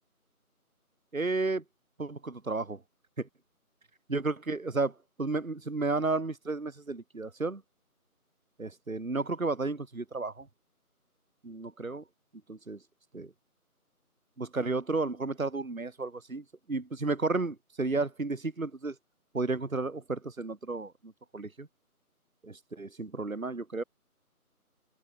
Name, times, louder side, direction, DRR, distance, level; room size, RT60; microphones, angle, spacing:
voice 1, 1.1-1.6 2.0-2.8 3.2-3.3 4.1-4.9 5.2-7.6 8.6-10.5 11.4-12.0 12.5-12.8 13.1-13.3 14.4-18.9 19.3-20.9 21.3-21.7 22.4-23.8, right 3 dB, 60° right, 1.4 m, -32 dB
open air
figure-of-eight pair, 170°, 45 cm